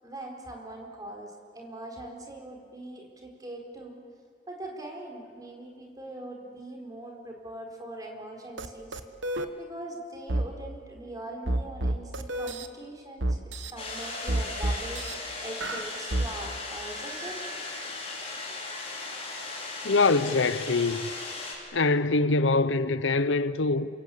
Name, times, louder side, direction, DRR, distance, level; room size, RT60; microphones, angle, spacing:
voice 1, 0.0-4.0 4.5-9.0 9.6-13.4 13.7-17.4, right 1 dB, 20° right, 4.4 m, -41 dB
sound 1, 8.6-8.7 8.9-9.5 10.3-10.5 11.5-12.7 13.2-13.7 14.3-15.1 15.6-16.3, right 1 dB, 70° right, 1.4 m, -28 dB
sound 2, 13.8-21.6, left 3 dB, 30° left, 4.9 m, -37 dB
voice 2, 19.8-21.1 21.7-23.9, left 3 dB, 75° left, 0.8 m, -24 dB
28.0 x 24.5 x 8.6 m
head